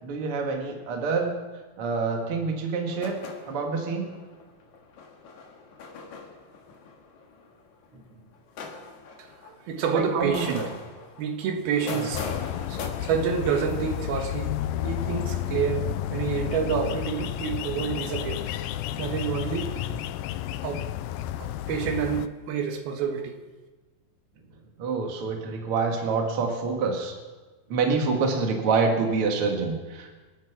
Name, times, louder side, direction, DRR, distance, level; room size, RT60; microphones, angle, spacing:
voice 1, 0.0-1.3 1.8-3.2 3.5-4.1 7.9-8.0 9.9-10.7 24.8-27.2 27.7-30.2, right 4 dB, 45° right, 2 dB, 2.4 m, -26 dB
sound 1, 2.9-7.9 8.3-10.0 10.3-12.9, left 4 dB, 60° left, 2.7 m, -40 dB
voice 2, 9.2-10.6 11.2-12.3 12.7-14.5 14.8-18.5 19.0-19.9 20.6-20.9 21.4-23.4, right 7 dB, 85° right, 4 dB, 3.2 m, -28 dB
sound 2, 12.1-22.3, left 12 dB, 80° left, 2.3 m, -31 dB
26.0 x 9.1 x 6.1 m, 1.3 s
omnidirectional pair, 4.3 m